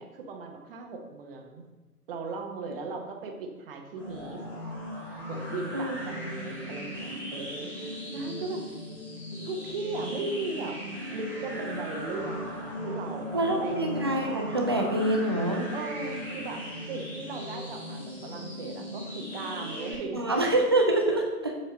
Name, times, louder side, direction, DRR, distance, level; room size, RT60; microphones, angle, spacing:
voice 1, 0.0-1.6 2.1-4.4 5.3-8.6 9.4-10.8 11.1-13.8 15.7-20.2, right 3 dB, 40° right, 3 dB, 1.2 m, -37 dB
sound 1, 4.0-20.0, left 1 dB, 5° left, 2.2 m, -37 dB
voice 2, 13.3-15.7 20.1-21.5, right 1 dB, 20° right, 1 dB, 0.3 m, -26 dB
7.5 x 4.5 x 5.2 m, 1.2 s
figure-of-eight pair, 120°, 45 cm